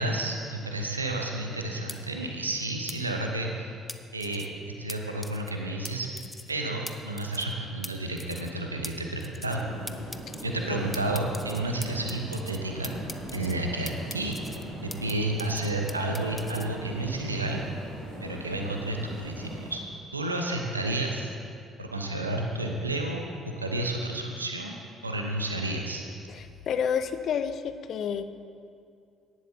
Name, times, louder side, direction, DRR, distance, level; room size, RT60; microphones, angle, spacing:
voice 1, 0.0-3.7 4.1-6.1 6.5-9.6 10.4-12.9 13.3-14.4 14.8-17.6 18.2-19.8 20.1-21.3 21.8-24.8 25.0-26.0, right 2 dB, 85° right, 2 dB, 0.9 m, -31 dB
sound 1, 1.9-2.0 2.9-3.0 3.9-4.5 4.9-5.0 5.2-5.5 5.8-5.9 6.2-6.5 6.9-7.0 7.2-7.5 7.8-7.9 8.2-8.5 8.8-8.9 9.2-9.6 9.9-10.4 10.9-12.6 12.8-13.5 13.9-15.1 15.4-16.7, left 1 dB, 10° left, 0.7 m, -40 dB
sound 2, 9.5-19.8, right 1 dB, 65° right, 2.8 m, -40 dB
voice 2, 26.3-28.3, left 7 dB, 50° left, 11 dB, 0.6 m, -30 dB
17.0 x 11.5 x 2.8 m, 2.4 s
figure-of-eight pair, 50°, 0 cm